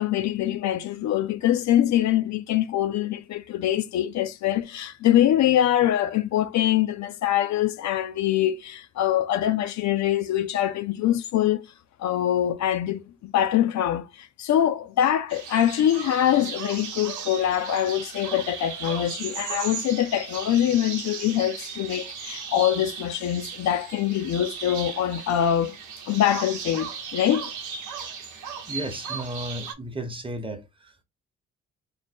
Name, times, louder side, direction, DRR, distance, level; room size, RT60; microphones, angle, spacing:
voice 1, 0.0-11.6 12.0-25.7 26.1-27.5, left 11 dB, 65° left, 0.5 m, -24 dB
sound 1, 15.3-29.7, right 6 dB, 90° right, 1.0 m, -36 dB
voice 2, 28.7-31.0, right 1 dB, 15° right, 0.9 m, -34 dB
3.3 x 2.1 x 4.1 m
cardioid pair, 90°, 30 cm